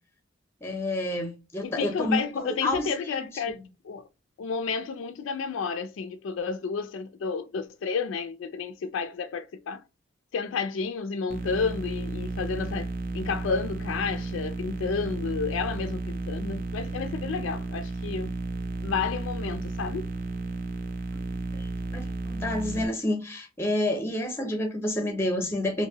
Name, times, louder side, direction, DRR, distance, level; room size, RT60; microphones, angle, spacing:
voice 1, 0.6-2.9 3.5-3.6 21.5-25.9, left 1 dB, 10° left, 0.6 m, -29 dB
voice 2, 1.6-4.0 4.4-9.8 10.3-18.3 18.8-20.1, left 5 dB, 70° left, 0.3 m, -31 dB
sound 1, 11.3-22.9, right 3 dB, 45° right, 0.4 m, -33 dB
2.8 x 2.5 x 2.7 m
head